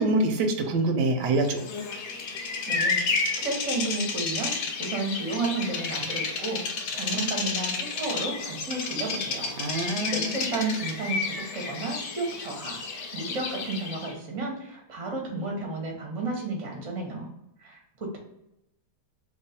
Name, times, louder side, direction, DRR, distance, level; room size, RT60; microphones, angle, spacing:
voice 1, 0.0-1.6 9.6-10.4, right 2 dB, 80° right, 5 dB, 1.2 m, -25 dB
Bird vocalization bird call bird song, 1.5-14.1, left 4 dB, 65° left, 0.7 m, -31 dB
voice 2, 2.7-9.6 10.1-12.8 13.1-17.3 17.6-18.2, right 2 dB, 35° right, 0 dB, 0.5 m, -32 dB
3.0 x 2.1 x 4.1 m, 0.85 s
omnidirectional pair, 1.8 m